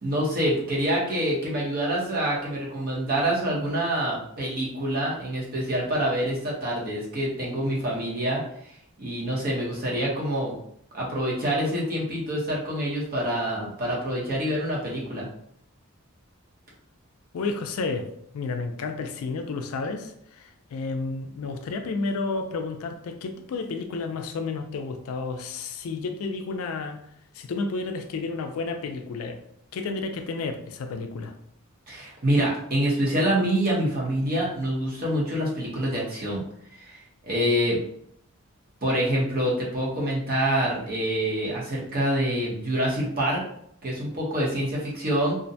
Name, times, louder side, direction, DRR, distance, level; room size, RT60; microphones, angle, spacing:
voice 1, 0.0-8.4 9.0-10.5 10.9-15.3 31.9-36.4 36.8-37.8 38.8-43.4 43.8-45.3, right 1 dB, 40° right, -5 dB, 0.8 m, -26 dB
voice 2, 17.3-18.1 18.3-27.0 27.3-29.4 29.7-31.3, left 3 dB, 70° left, 6 dB, 0.3 m, -31 dB
2.4 x 2.1 x 2.6 m, 0.69 s
head